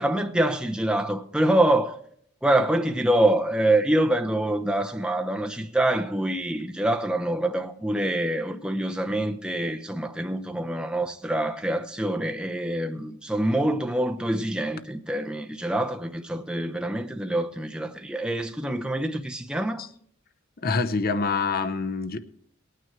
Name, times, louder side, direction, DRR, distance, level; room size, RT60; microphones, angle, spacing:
voice 1, 0.0-2.0 2.4-19.8, right 1 dB, 5° right, 0.8 m, -25 dB
voice 2, 20.6-22.2, left 4 dB, 45° left, 0.8 m, -26 dB
18.0 x 9.3 x 4.6 m
head